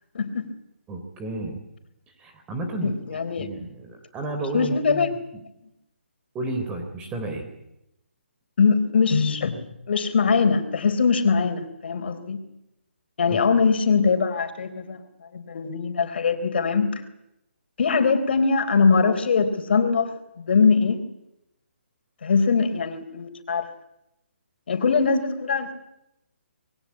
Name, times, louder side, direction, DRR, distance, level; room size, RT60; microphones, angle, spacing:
voice 1, 0.1-0.5 2.8-3.5 4.5-5.1 8.6-9.6 9.9-12.4 13.2-15.0 15.3-17.0 17.8-21.0 22.2-23.7 24.7-25.7, left 5 dB, 55° left, 9 dB, 4.1 m, -22 dB
voice 2, 0.9-1.6 2.2-5.1 6.3-7.5 13.3-13.4, right 2 dB, 15° right, 5 dB, 3.6 m, -32 dB
26.0 x 22.0 x 8.7 m, 0.87 s
hypercardioid pair, 155°, 7 cm